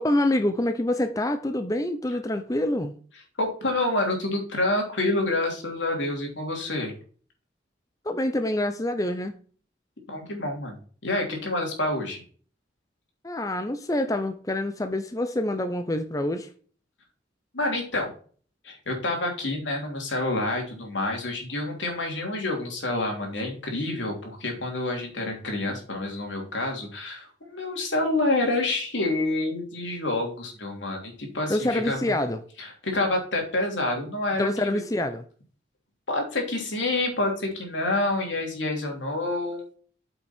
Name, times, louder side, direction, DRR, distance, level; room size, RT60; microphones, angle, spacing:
voice 1, 0.0-3.0 8.0-9.4 13.2-16.5 31.5-32.4 34.4-35.2, left 1 dB, 20° left, 0.6 m, -26 dB
voice 2, 3.4-6.9 10.1-12.2 17.5-18.1 18.6-32.1 32.6-34.8 36.1-39.8, left 2 dB, 85° left, 3.0 m, -28 dB
8.2 x 5.9 x 4.4 m
head